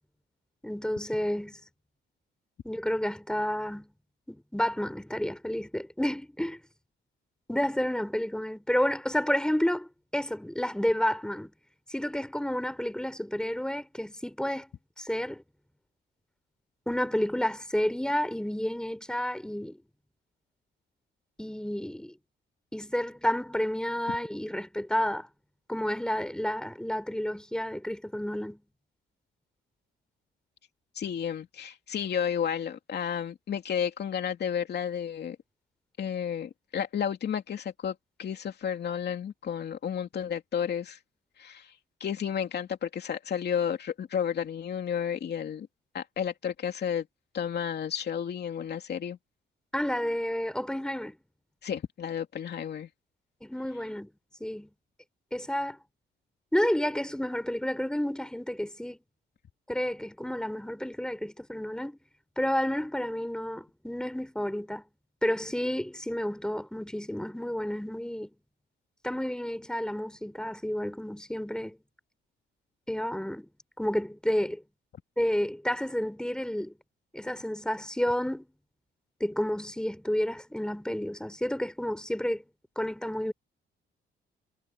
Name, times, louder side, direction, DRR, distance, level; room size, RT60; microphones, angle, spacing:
voice 1, 0.6-1.6 2.6-3.9 4.3-6.6 7.5-11.5 11.9-14.7 15.0-15.4 16.9-19.8 21.4-22.1 22.7-25.3 25.7-28.6 49.7-51.1 53.4-54.1 54.4-54.7 55.3-55.8 56.5-59.0 59.7-62.0 62.4-64.8 65.2-68.3 69.0-71.8 72.9-73.5 73.8-74.6 75.2-76.8 77.1-78.5 79.2-82.4 82.8-83.3, equal, 5° left, 4.2 m, -30 dB
voice 2, 30.9-35.4 36.0-41.0 41.4-41.7 42.0-45.7 45.9-47.1 47.3-49.2 51.6-52.9, left 8 dB, 55° left, 2.8 m, -32 dB
cardioid pair, 90°, 20 cm